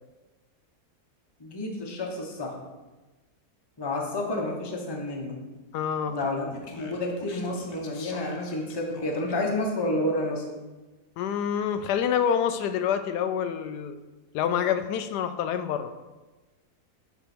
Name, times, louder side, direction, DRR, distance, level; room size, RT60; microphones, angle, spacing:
voice 1, 1.4-2.6 3.8-5.4 6.1-10.5, left 1 dB, 20° left, 0 dB, 0.8 m, -30 dB
voice 2, 5.7-6.2 11.2-14.0 14.3-15.9, left 8 dB, 90° left, 10 dB, 1.2 m, -27 dB
Speech, 6.1-9.6, left 4 dB, 70° left, 1.3 m, -46 dB
7.6 x 3.6 x 6.0 m, 1.2 s
omnidirectional pair, 1.7 m